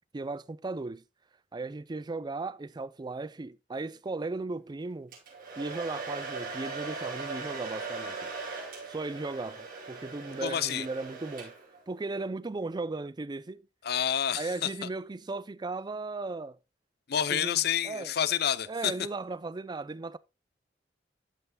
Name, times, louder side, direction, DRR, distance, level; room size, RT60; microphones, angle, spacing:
voice 1, 0.1-1.0 1.5-5.1 5.6-8.2 8.9-11.5 11.9-13.7 14.4-16.6 17.3-18.1 18.7-20.2, right 3 dB, 25° right, 0.4 m, -36 dB
Domestic sounds home sounds, 5.1-11.8, right 4 dB, 50° right, 4.9 m, -39 dB
voice 2, 10.4-10.9 13.8-14.7 17.1-18.9, left 9 dB, 60° left, 0.5 m, -28 dB
13.5 x 5.6 x 2.2 m
head